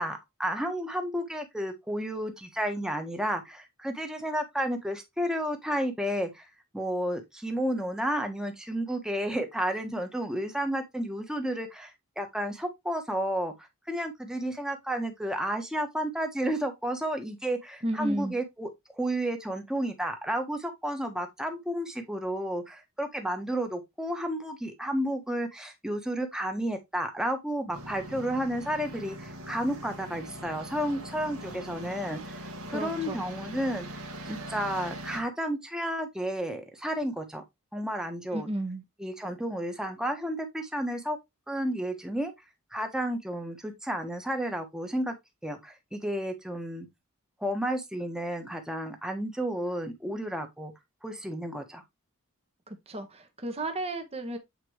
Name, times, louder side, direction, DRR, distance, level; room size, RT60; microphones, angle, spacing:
voice 1, 0.0-6.5 6.7-18.7 19.0-33.9 34.3-37.4 37.7-38.5 39.0-41.2 41.5-42.3 42.7-45.1 45.4-46.9 47.4-50.7 51.0-51.8, equal, 5° right, 1.4 m, -32 dB
voice 2, 17.8-18.4 32.7-33.3 38.3-38.8 52.7-54.4, right 1 dB, 30° right, 1.4 m, -33 dB
sound 1, 27.7-35.2, right 1 dB, 90° right, 2.0 m, -41 dB
8.5 x 4.4 x 3.2 m
head